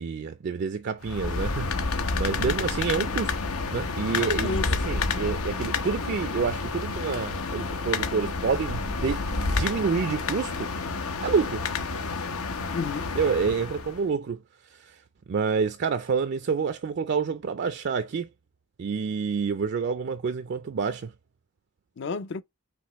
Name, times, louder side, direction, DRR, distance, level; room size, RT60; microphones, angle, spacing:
voice 1, 0.0-3.3 3.7-10.7 11.2-11.6 13.2-14.4 14.7-15.0 15.3-18.3 18.8-21.1, right 5 dB, 50° right, 0.4 m, -28 dB
sound 1, 1.0-14.0, left 4 dB, 85° left, 0.9 m, -29 dB
voice 2, 4.2-5.4 12.7-13.1 22.0-22.4, left 4 dB, 55° left, 0.5 m, -33 dB
5.1 x 3.0 x 3.0 m
head